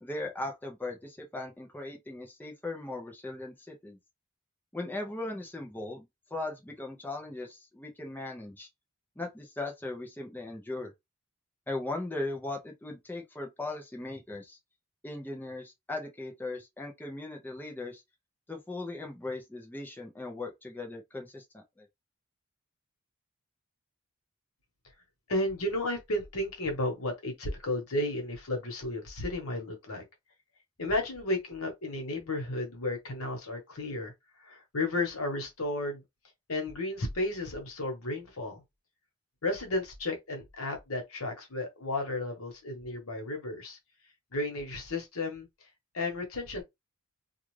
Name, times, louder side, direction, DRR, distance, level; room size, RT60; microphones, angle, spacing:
voice 1, 0.0-4.0 4.7-8.7 9.2-10.9 11.7-14.6 15.0-18.0 18.5-21.9, left 2 dB, 10° left, 0.6 m, -38 dB
voice 2, 25.3-30.0 30.8-34.1 34.4-36.0 36.5-38.6 39.4-43.8 44.3-45.5 45.9-46.6, left 2 dB, 85° left, 1.1 m, -33 dB
2.4 x 2.4 x 3.1 m
head